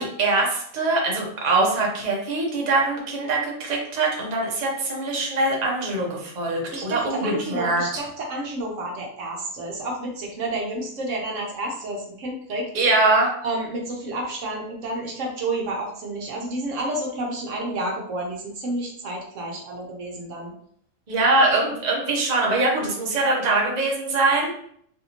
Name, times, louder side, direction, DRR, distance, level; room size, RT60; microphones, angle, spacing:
voice 1, 0.0-7.8 12.7-13.3 21.1-24.5, right 2 dB, 40° right, -1 dB, 0.7 m, -22 dB
voice 2, 6.7-12.7 13.4-20.5, right 2 dB, 65° right, -1 dB, 1.0 m, -30 dB
3.4 x 2.6 x 2.8 m, 0.65 s
omnidirectional pair, 1.5 m